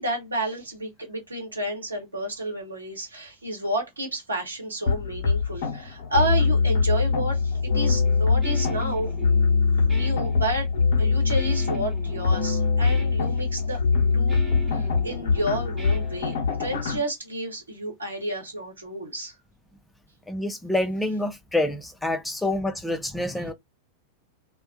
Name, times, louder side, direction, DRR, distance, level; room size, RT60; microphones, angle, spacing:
voice 1, 0.0-9.1 9.8-10.7 11.0-13.8 14.1-14.4 14.7-19.3, right 1 dB, 80° right, 0.9 m, -31 dB
sound 1, 4.9-17.0, left 4 dB, 55° left, 0.8 m, -23 dB
Guitar, 8.1-16.7, right 1 dB, 15° right, 1.0 m, -40 dB
voice 2, 20.3-23.5, left 1 dB, 5° left, 0.4 m, -27 dB
2.2 x 2.1 x 2.6 m
figure-of-eight pair, 90°, 0 cm